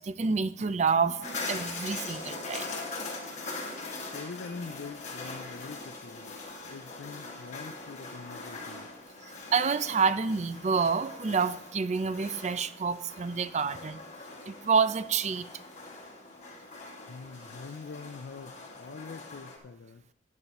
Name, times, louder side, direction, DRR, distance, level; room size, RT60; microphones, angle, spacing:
voice 1, 0.0-2.7 9.2-14.0 14.5-15.5, right 5 dB, 40° right, 0.5 m, -28 dB
sound 1, 1.2-19.6, left 3 dB, 40° left, 1.9 m, -42 dB
voice 2, 4.1-6.3 6.7-8.9 17.1-20.0, left 4 dB, 85° left, 0.5 m, -44 dB
13.0 x 9.6 x 3.0 m
head